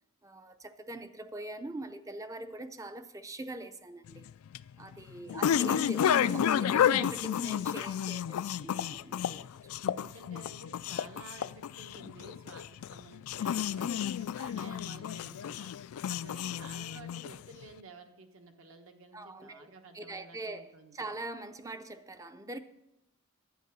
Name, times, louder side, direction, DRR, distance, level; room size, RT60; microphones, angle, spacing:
voice 1, 0.2-4.3 4.8-9.5 19.1-19.7 19.9-22.6, right 2 dB, 15° right, 0.5 m, -42 dB
sound 1, 4.1-17.6, left 9 dB, 80° left, 0.3 m, -31 dB
voice 2, 5.2-5.7 9.8-21.1, right 2 dB, 70° right, 1.4 m, -52 dB
11.0 x 8.9 x 6.1 m
head